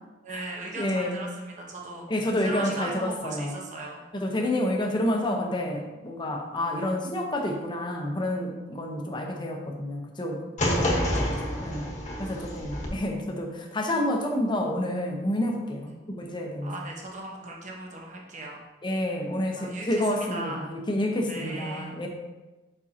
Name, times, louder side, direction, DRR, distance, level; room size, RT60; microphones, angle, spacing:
voice 1, 0.2-4.0 10.6-11.0 11.3-11.4 15.9-16.0 16.6-18.6 19.6-20.7 21.3-22.0, right 2 dB, 40° right, -1 dB, 1.1 m, -38 dB
voice 2, 0.8-1.2 2.1-3.6 4.1-11.3 11.6-11.9 12.2-16.7 18.8-22.1, left 1 dB, 25° left, 1 dB, 0.9 m, -29 dB
sound 1, 10.6-12.9, left 1 dB, 40° left, 1.3 m, -28 dB
7.4 x 5.5 x 2.8 m, 1.1 s
head